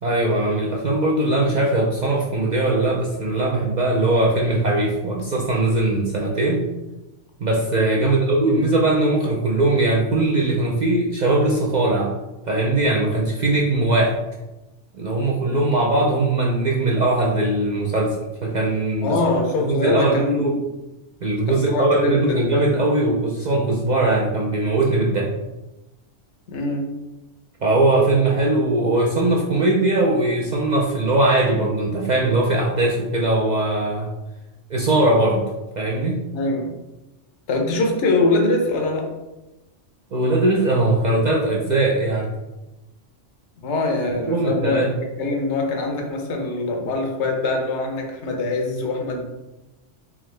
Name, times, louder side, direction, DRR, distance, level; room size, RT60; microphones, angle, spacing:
voice 1, 0.0-6.6 7.4-12.1 12.5-14.2 14.9-19.2 19.6-20.5 21.2-25.3 27.6-34.1 34.7-36.2 40.1-42.3 44.3-44.9, right 2 dB, 60° right, -2 dB, 0.4 m, -20 dB
voice 2, 19.0-20.7 21.5-22.5 26.5-26.9 36.3-36.7 37.5-39.1 43.6-49.2, left 2 dB, 70° left, 2 dB, 1.0 m, -23 dB
3.6 x 2.8 x 3.1 m, 1.0 s
omnidirectional pair, 1.2 m